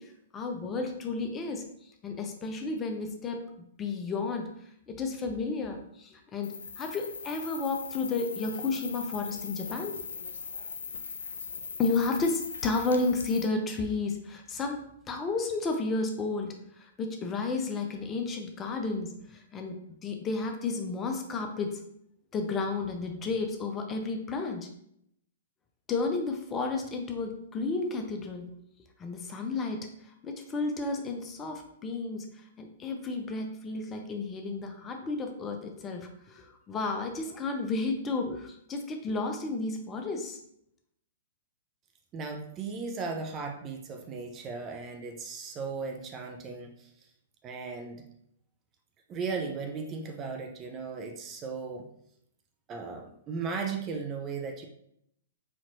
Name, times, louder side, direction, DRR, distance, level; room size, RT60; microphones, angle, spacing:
voice 1, 0.0-3.5 3.8-4.5 4.9-10.0 11.8-21.8 22.3-24.7 25.9-28.5 29.0-40.4, left 3 dB, 20° left, 4 dB, 0.5 m, -32 dB
sound 1, 6.4-13.4, left 5 dB, 70° left, 0.4 m, -40 dB
voice 2, 42.1-46.9 47.4-48.0 49.1-51.9 52.7-54.7, right 4 dB, 25° right, 3 dB, 0.6 m, -36 dB
4.3 x 2.9 x 2.6 m, 0.73 s
figure-of-eight pair, 115°, 0 cm